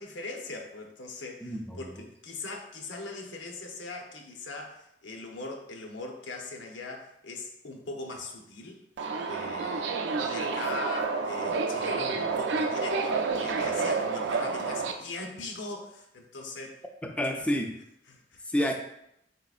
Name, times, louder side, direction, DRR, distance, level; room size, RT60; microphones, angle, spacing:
voice 1, 0.0-8.8 9.3-16.8 17.4-17.5 18.1-18.5, left 2 dB, 90° left, 2 dB, 0.7 m, -40 dB
voice 2, 1.4-1.8 17.0-17.8 18.5-18.7, equal, 5° left, 3 dB, 0.4 m, -29 dB
Subway metro underground, 9.0-14.9, right 4 dB, 75° right, 0.4 m, -29 dB
4.2 x 3.7 x 2.4 m, 0.78 s
head